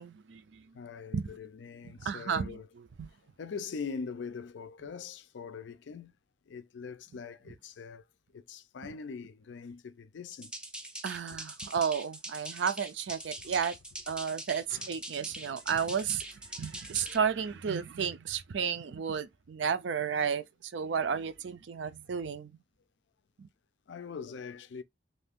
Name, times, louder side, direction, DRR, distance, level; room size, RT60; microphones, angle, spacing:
voice 1, 0.0-0.7 1.1-1.3 2.0-2.6 3.0-3.1 11.0-13.7 14.1-16.3 16.6-22.5 23.4-23.5, right 7 dB, 70° right, 0.4 m, -32 dB
voice 2, 0.7-2.7 3.4-6.2 6.5-8.0 8.3-10.5 14.7-14.9 16.5-16.8 17.1-17.2 23.9-24.8, left 5 dB, 70° left, 0.4 m, -42 dB
sound 1, 10.3-17.2, right 1 dB, 5° right, 0.4 m, -43 dB
2.6 x 2.4 x 3.5 m
head